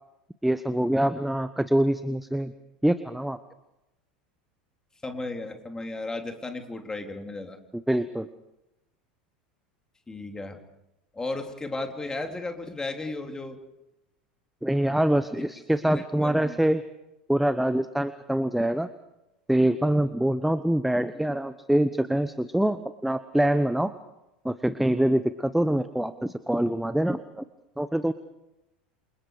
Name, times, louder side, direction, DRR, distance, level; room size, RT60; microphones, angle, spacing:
voice 1, 0.4-2.5 2.8-3.4 7.9-8.3 14.6-16.8 17.3-18.9 19.5-23.9 24.4-27.4 27.8-28.1, right 1 dB, 5° right, 13 dB, 1.1 m, -25 dB
voice 2, 5.0-7.6 10.1-10.6 11.1-13.6 15.4-15.5 15.8-16.6, left 2 dB, 15° left, 5 dB, 3.5 m, -35 dB
28.5 x 27.5 x 5.0 m, 0.90 s
figure-of-eight pair, 80°, 5 cm